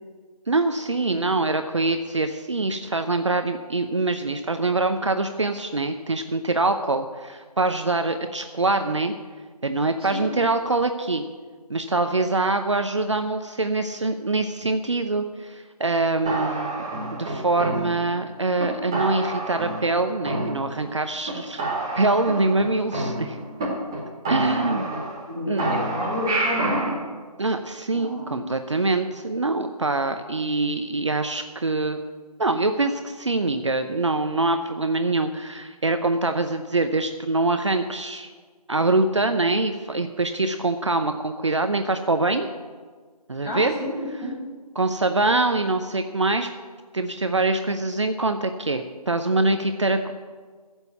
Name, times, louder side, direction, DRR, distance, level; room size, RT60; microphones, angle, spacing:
voice 1, 0.5-9.1 9.6-11.2 11.7-16.8 17.1-21.6 22.0-23.4 24.3-24.9 25.4-25.6 27.4-32.0 32.4-38.3 38.7-42.5 43.3-43.7 44.8-46.5 46.9-50.1, right 2 dB, 45° right, 7 dB, 0.7 m, -24 dB
sound 1, 16.3-18.2 18.6-18.7 18.9-20.0 20.3-21.0 21.3-21.4 21.6-23.6 23.9-24.0 24.3-25.3 25.6-26.9, right 2 dB, 5° right, 0.9 m, -28 dB
voice 2, 24.3-24.8 25.3-26.9 27.9-28.4 43.4-44.3, left 1 dB, 10° left, -10 dB, 3.5 m, -30 dB
14.5 x 7.2 x 8.1 m, 1.5 s
figure-of-eight pair, 165°, 21 cm